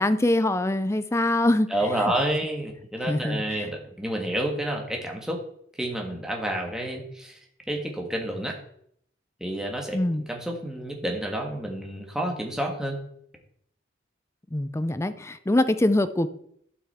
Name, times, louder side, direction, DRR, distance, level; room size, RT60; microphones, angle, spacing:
voice 1, 0.0-1.7 3.1-3.7 9.9-10.2 14.5-16.3, left 1 dB, 15° left, 12 dB, 0.5 m, -23 dB
voice 2, 1.7-5.4 5.8-7.4 7.7-8.6 9.4-13.0, right 1 dB, 5° right, 1 dB, 1.6 m, -29 dB
12.0 x 6.0 x 4.3 m, 0.69 s
head